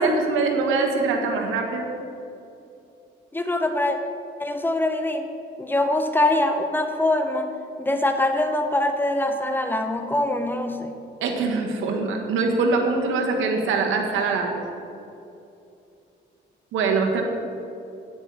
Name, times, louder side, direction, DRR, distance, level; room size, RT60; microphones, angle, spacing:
voice 1, 0.0-1.9 11.2-14.6 16.7-17.2, right 3 dB, 90° right, 2 dB, 1.4 m, -23 dB
voice 2, 3.3-4.0 4.4-5.3 5.6-7.5 7.8-10.9, left 1 dB, 10° left, 6 dB, 1.0 m, -23 dB
9.9 x 8.7 x 4.8 m, 2.7 s
cardioid pair, 90°, 20 cm